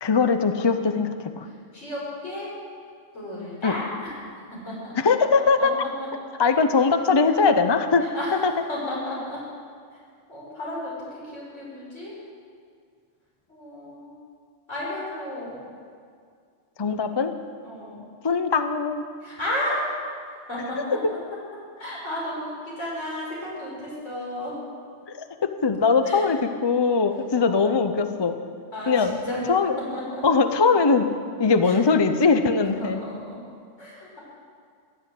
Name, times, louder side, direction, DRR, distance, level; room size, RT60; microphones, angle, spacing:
voice 1, 0.0-1.5 3.6-3.7 5.0-5.7 6.4-8.0 8.4-8.5 16.8-17.3 18.2-19.0 25.4-28.4 28.9-29.1 29.5-29.7 30.2-31.1 31.4-33.0, left 4 dB, 30° left, 8 dB, 0.5 m, -21 dB
voice 2, 1.4-2.5 3.1-4.1 4.7-4.9 5.8-5.9 7.4-7.5 8.0-8.4 8.7-9.4 10.3-12.2 13.5-14.2 14.7-15.7 17.6-18.1 19.2-20.0 20.5-21.2 21.8-24.5 26.0-26.3 27.3-28.0 28.7-29.4 29.9-30.2 31.6-31.8 32.8-33.4 33.8-34.2, left 1 dB, 70° left, -6 dB, 5.9 m, -33 dB
16.0 x 11.0 x 7.8 m, 2.2 s
omnidirectional pair, 1.3 m